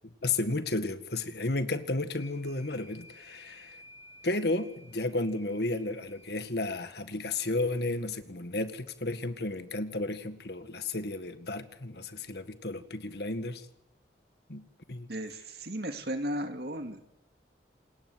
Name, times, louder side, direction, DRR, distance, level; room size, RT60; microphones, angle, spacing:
voice 1, 0.2-3.8 4.2-13.7 14.5-14.6 14.9-15.1, left 2 dB, 60° left, 10 dB, 1.9 m, -33 dB
sound 1, 2.1-6.3, left 1 dB, 85° left, 6.2 m, -55 dB
voice 2, 15.1-17.0, equal, 60° right, 7 dB, 2.4 m, -35 dB
28.0 x 19.5 x 8.0 m, 0.82 s
head